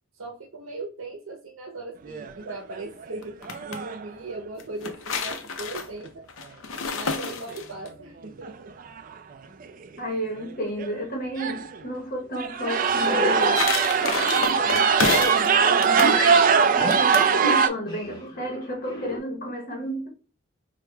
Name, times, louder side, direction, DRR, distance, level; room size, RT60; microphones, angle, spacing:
voice 1, 0.1-3.4 3.6-6.2 6.9-8.7, right 2 dB, 85° right, 0.8 m, -38 dB
sound 1, 2.1-2.5 3.0-3.1 3.5-4.0 7.2-7.3 8.4-8.5 8.8-9.1 9.6-9.7 10.4-10.5 10.8-10.9 11.4-11.8 12.4-17.7, right 6 dB, 40° right, 0.3 m, -21 dB
sound 2, 3.2-3.8 4.6-7.9 13.0-15.5 15.8-16.2 16.9-17.3, left 5 dB, 75° left, 0.6 m, -29 dB
voice 2, 10.0-13.7 14.4-16.4 16.8-20.1, equal, 45° left, 1.0 m, -32 dB
sound 3, 12.9-19.2, equal, 20° left, 1.0 m, -33 dB
4.6 x 2.3 x 2.2 m
head